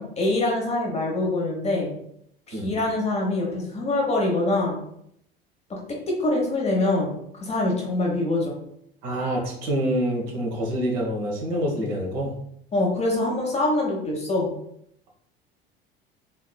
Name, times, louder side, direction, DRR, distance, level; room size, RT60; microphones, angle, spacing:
voice 1, 0.0-1.9 2.5-4.8 5.7-5.8 6.1-8.6 12.7-14.5, left 2 dB, 20° left, -1 dB, 0.9 m, -24 dB
voice 2, 9.0-12.3, equal, 55° right, -1 dB, 1.1 m, -26 dB
3.5 x 2.9 x 2.2 m, 0.72 s
figure-of-eight pair, 65°, 29 cm